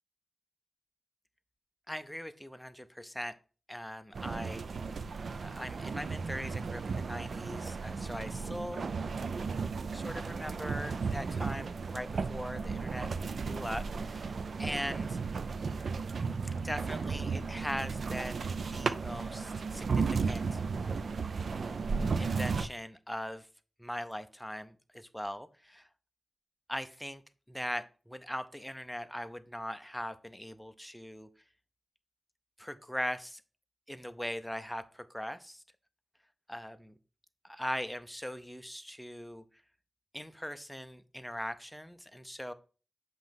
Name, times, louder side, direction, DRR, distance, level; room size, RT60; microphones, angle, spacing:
voice 1, 1.9-3.3 3.7-4.8 5.3-8.9 9.9-13.1 13.4-15.2 16.6-20.6 22.2-23.5 23.8-25.9 26.7-27.2 27.5-31.3 32.6-33.4 33.9-35.6 36.5-37.0 37.4-39.4 40.1-42.5, equal, 5° left, 0.5 m, -40 dB
sound 1, 4.1-22.7, right 5 dB, 60° right, 0.4 m, -34 dB
7.5 x 3.1 x 5.1 m
wide cardioid pair, 150°, 0 cm